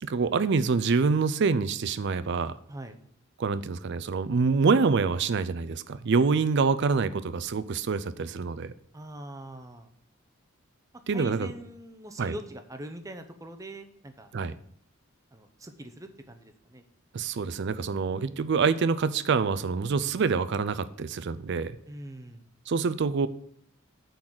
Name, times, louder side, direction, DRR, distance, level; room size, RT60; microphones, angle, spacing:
voice 1, 0.0-2.6 3.4-8.7 11.1-11.5 12.2-12.3 14.3-14.5 17.1-21.7 22.7-23.3, right 5 dB, 55° right, 15 dB, 0.4 m, -26 dB
voice 2, 8.9-9.9 11.1-14.3 15.3-16.8 21.9-22.4, right 1 dB, 15° right, 7 dB, 0.7 m, -42 dB
8.6 x 4.0 x 6.1 m, 0.64 s
head